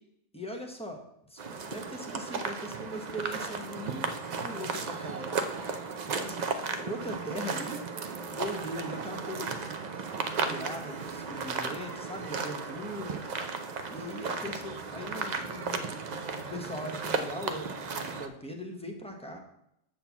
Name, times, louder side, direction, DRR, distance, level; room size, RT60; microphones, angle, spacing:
voice 1, 0.3-1.0 1.3-4.0 4.4-5.3 6.1-7.8 8.3-9.8 10.2-13.2 13.9-16.2 16.5-19.4, equal, 5° left, 2 dB, 0.8 m, -40 dB
sound 1, 1.4-18.3, right 4 dB, 90° right, 0.3 m, -35 dB
7.5 x 4.4 x 7.0 m, 0.79 s
omnidirectional pair, 1.6 m